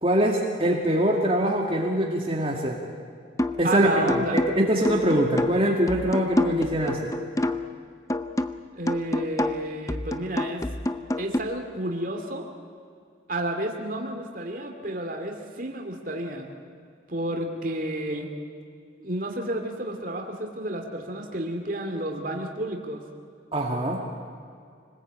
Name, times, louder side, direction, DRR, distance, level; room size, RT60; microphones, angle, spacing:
voice 1, 0.0-2.8 3.6-4.1 4.6-7.1 23.5-24.0, right 1 dB, 30° right, 0 dB, 2.1 m, -23 dB
sound 1, 3.4-3.7 4.1-7.8 8.1-11.4, left 1 dB, 15° left, 0.7 m, -28 dB
voice 2, 3.6-4.4 8.7-10.6 11.2-12.5 13.3-16.5 17.1-18.3 19.0-23.0, right 1 dB, 45° right, 2 dB, 2.5 m, -31 dB
26.0 x 20.0 x 8.8 m, 2.3 s
head